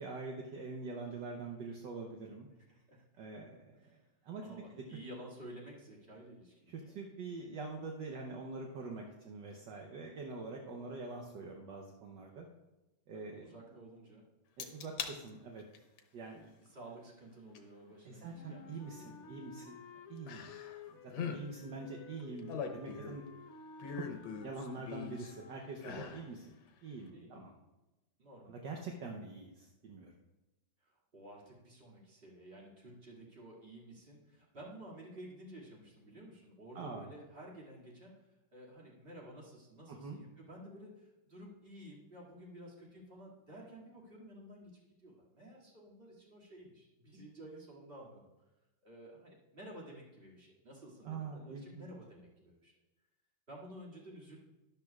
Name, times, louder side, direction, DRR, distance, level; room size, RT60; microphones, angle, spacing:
voice 1, 0.0-2.5 3.2-4.0 4.2-5.0 6.7-12.5 13.1-13.5 14.6-15.6 16.1-16.5 18.0-19.8 20.1-20.5 20.9-23.2 23.9-24.2 24.4-26.4 26.8-27.5 28.4-30.1 36.7-37.1 39.9-40.2 51.0-51.9, right 3 dB, 65° right, 1 dB, 1.5 m, -45 dB
voice 2, 2.7-3.0 3.9-4.0 4.4-7.5 13.1-14.3 16.6-19.3 25.9-26.1 27.1-27.5 28.2-28.6 30.8-38.1 38.5-48.2 48.8-52.7 53.5-54.4, right 1 dB, 30° right, -4 dB, 2.4 m, -52 dB
sound 1, 14.6-15.2 15.6-16.0 17.6-17.7 20.3-20.8 21.1-21.4 22.2-23.3 23.8-25.3 25.8-26.3 26.7-26.8, left 6 dB, 85° left, 1.7 m, -41 dB
Wind instrument woodwind instrument, 18.3-26.0, left 5 dB, 60° left, 0.9 m, -54 dB
12.5 x 12.0 x 2.4 m, 1.0 s
omnidirectional pair, 2.2 m